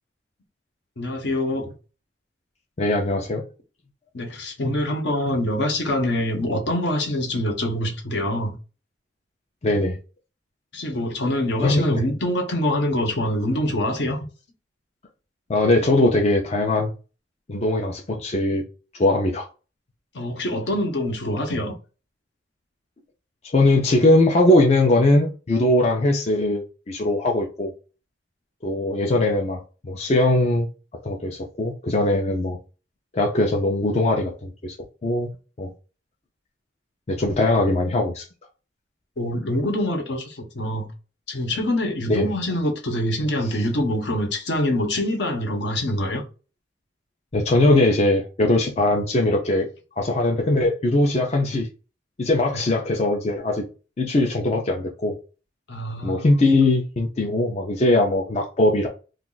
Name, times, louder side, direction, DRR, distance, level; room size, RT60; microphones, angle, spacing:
voice 1, 1.0-1.7 4.1-8.6 10.7-14.2 20.1-21.7 39.2-40.9 41.3-46.2 55.7-56.4, left 1 dB, 65° left, 0.9 m, -25 dB
voice 2, 2.8-3.4 9.6-10.0 11.6-12.0 15.5-16.9 17.5-18.6 19.0-19.5 23.5-27.7 28.6-30.7 31.0-32.6 33.1-34.7 35.0-35.3 35.6-35.7 37.1-38.2 42.1-42.3 47.3-49.7 50.0-51.7 52.2-53.6 54.0-55.1 56.0-58.9, left 2 dB, 35° left, 0.5 m, -20 dB
2.4 x 2.4 x 3.8 m
head